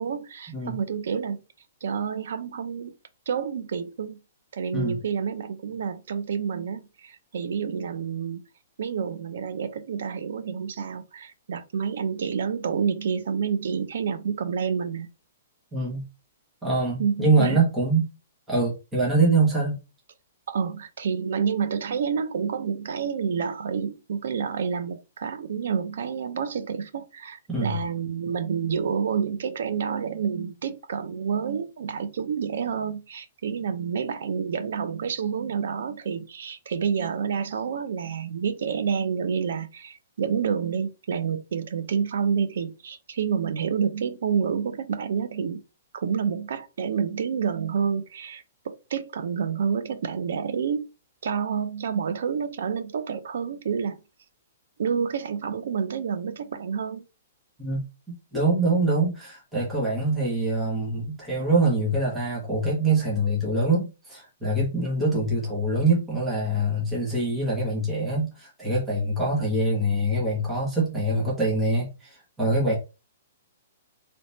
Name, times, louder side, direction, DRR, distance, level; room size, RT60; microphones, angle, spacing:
voice 1, 0.0-1.4 1.8-2.9 3.3-4.2 4.5-8.4 8.8-15.1 17.0-17.6 20.5-45.6 45.9-50.9 51.2-54.0 54.8-57.0, right 6 dB, 60° right, 0.6 m, -28 dB
voice 2, 15.7-16.0 16.6-18.0 18.5-19.8 27.5-27.8 57.6-57.8 58.3-72.7, right 2 dB, 5° right, 1.4 m, -24 dB
3.4 x 3.0 x 4.1 m
hypercardioid pair, 175°, 0 cm